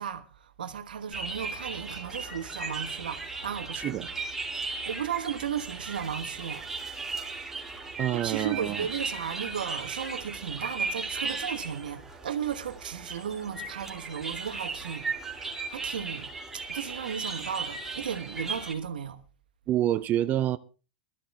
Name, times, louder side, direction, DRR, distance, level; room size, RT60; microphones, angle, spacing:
voice 1, 0.0-4.1 4.5-6.7 8.1-19.2, right 8 dB, 85° right, 1.3 m, -35 dB
sound 1, 1.1-18.7, right 3 dB, 10° right, 2.6 m, -36 dB
voice 2, 3.7-4.1 8.0-8.9 19.7-20.6, right 12 dB, 35° right, 0.6 m, -27 dB
22.0 x 13.5 x 2.3 m
hypercardioid pair, 100°, 5 cm